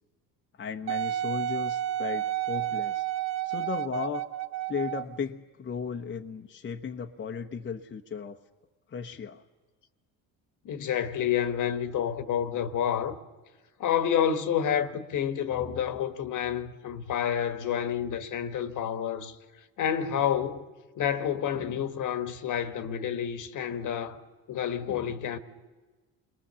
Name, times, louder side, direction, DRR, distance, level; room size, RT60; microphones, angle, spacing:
voice 1, 0.6-3.0 3.4-4.2 4.7-8.4 8.9-9.4, left 6 dB, 35° left, 1.1 m, -35 dB
Wind instrument woodwind instrument, 0.9-5.2 5.8-5.9, right 13 dB, 50° right, 0.8 m, -31 dB
voice 2, 10.6-13.2 13.8-19.4 19.8-20.6 21.0-24.2 24.5-25.4, left 9 dB, 60° left, 1.5 m, -29 dB
28.5 x 21.5 x 7.0 m
cardioid pair, 95°, 35 cm